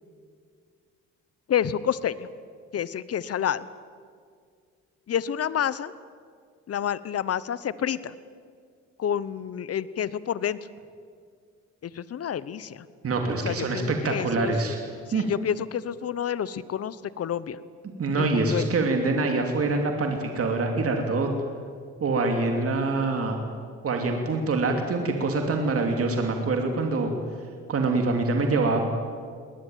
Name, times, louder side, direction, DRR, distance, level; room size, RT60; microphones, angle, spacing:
voice 1, 1.5-2.3 2.7-3.7 5.1-5.9 6.7-8.1 9.0-10.6 11.8-12.9 13.4-14.5 15.1-17.6 18.2-18.7, left 9 dB, 50° left, 17 dB, 1.0 m, -29 dB
voice 2, 13.0-14.8 15.1-15.3 18.0-21.3 22.0-23.4 23.8-27.1 27.7-28.8, right 3 dB, 50° right, 3 dB, 2.8 m, -25 dB
20.5 x 19.5 x 9.3 m, 2.1 s
cardioid pair, 90°, 30 cm